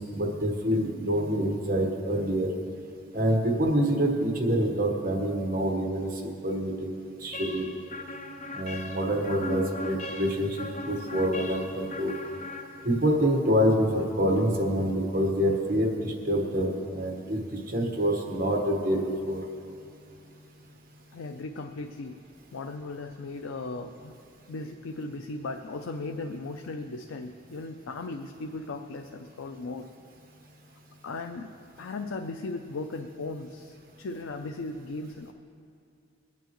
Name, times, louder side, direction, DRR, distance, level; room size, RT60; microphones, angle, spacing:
voice 1, 0.0-2.5 3.1-7.8 8.5-12.1 12.8-19.4, equal, 45° right, 1 dB, 1.3 m, -26 dB
sound 1, 7.3-13.2, left 2 dB, 35° left, 0.7 m, -38 dB
voice 2, 21.1-22.2 22.5-24.1 24.5-29.9 31.0-35.3, left 3 dB, 80° left, 5 dB, 0.5 m, -37 dB
22.5 x 9.1 x 3.1 m, 2.5 s
head